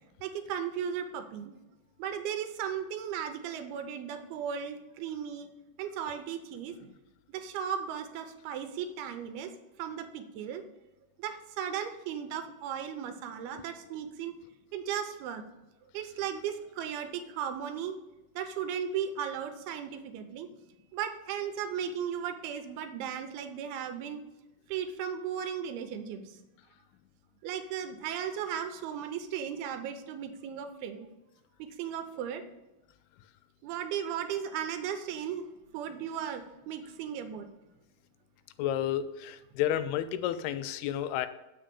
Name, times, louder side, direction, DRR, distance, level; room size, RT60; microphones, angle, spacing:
voice 1, 0.2-1.5 2.0-5.5 5.8-6.9 7.3-9.5 9.8-10.6 11.2-14.3 14.7-15.4 15.9-18.0 18.4-20.5 20.9-24.2 24.7-26.4 27.4-31.1 31.6-32.4 33.6-35.5 35.7-37.5, right 8 dB, 85° right, 8 dB, 2.6 m, -36 dB
voice 2, 38.6-41.3, left 11 dB, 85° left, 12 dB, 2.6 m, -31 dB
7.5 x 5.5 x 6.8 m, 0.99 s
omnidirectional pair, 4.5 m